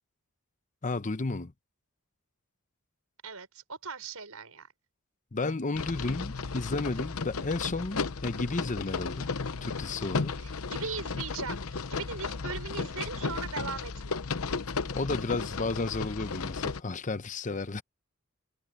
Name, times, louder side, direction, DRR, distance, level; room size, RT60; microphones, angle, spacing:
voice 1, 0.8-1.5 5.3-9.3 9.6-10.4 14.9-17.8, left 3 dB, 35° left, 0.8 m, -32 dB
voice 2, 3.2-4.7 10.4-11.6 11.9-14.2, right 5 dB, 80° right, 6.0 m, -39 dB
sound 1, 5.7-16.8, left 4 dB, 80° left, 0.8 m, -34 dB
head